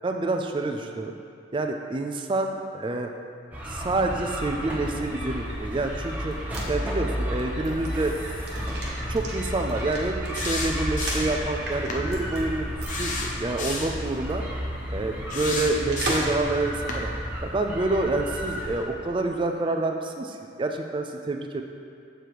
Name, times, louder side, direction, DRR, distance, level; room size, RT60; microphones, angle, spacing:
voice 1, 0.0-1.1 1.5-3.1 3.7-6.4 6.7-8.1 8.9-12.7 13.0-14.4 14.9-17.1 17.4-21.6, right 2 dB, 25° right, 4 dB, 0.4 m, -28 dB
sound 1, 3.5-18.8, equal, 10° right, 1.0 m, -32 dB
sound 2, 6.3-11.3 11.7-12.4 12.8-13.0 13.3-13.4 15.9-16.4 16.8-16.9, right 2 dB, 55° right, 1.3 m, -36 dB
sound 3, 10.4-11.4 11.9-12.0 12.9-14.0 15.3-16.4 16.9-17.0, left 3 dB, 40° left, 0.8 m, -32 dB
7.5 x 5.1 x 4.7 m, 2.5 s
head